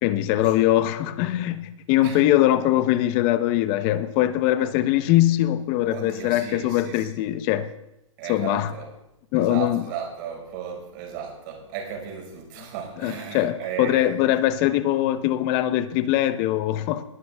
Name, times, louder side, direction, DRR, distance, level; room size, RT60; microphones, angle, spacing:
voice 1, 0.0-7.7 8.3-8.7 9.3-9.8 13.0-17.0, left 13 dB, 30° left, 12 dB, 0.9 m, -22 dB
voice 2, 5.9-7.1 8.2-8.9 9.3-14.4, right 7 dB, 40° right, 1 dB, 5.3 m, -35 dB
21.0 x 12.0 x 3.5 m, 0.86 s
hypercardioid pair, 150°, 17 cm